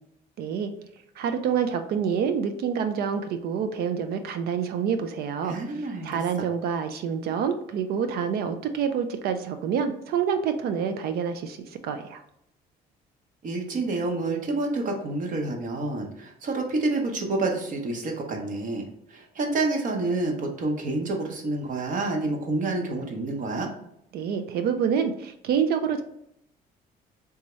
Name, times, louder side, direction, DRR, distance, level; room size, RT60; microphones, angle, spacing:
voice 1, 0.4-0.7 1.2-5.6 6.0-11.6 11.8-12.2 24.1-26.0, right 7 dB, 65° right, 8 dB, 0.4 m, -27 dB
voice 2, 5.4-6.2 13.4-23.7, right 2 dB, 50° right, 2 dB, 0.9 m, -28 dB
3.5 x 2.8 x 3.0 m, 0.76 s
cardioid pair, 110°, 17 cm